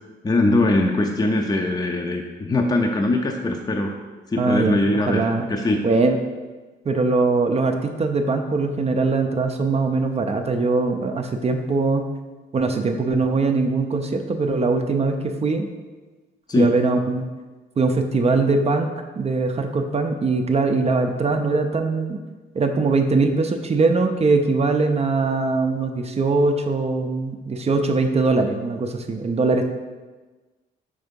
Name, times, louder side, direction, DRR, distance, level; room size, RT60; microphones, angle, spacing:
voice 1, 0.2-3.9 4.3-5.8 16.5-16.7, left 2 dB, 20° left, 1 dB, 0.5 m, -21 dB
voice 2, 4.4-5.5 5.8-6.2 6.9-12.1 12.5-15.7 16.6-17.2 17.8-22.2 22.5-29.7, right 3 dB, 30° right, 5 dB, 0.5 m, -21 dB
5.4 x 3.5 x 5.2 m, 1.3 s
cardioid pair, 90°, 20 cm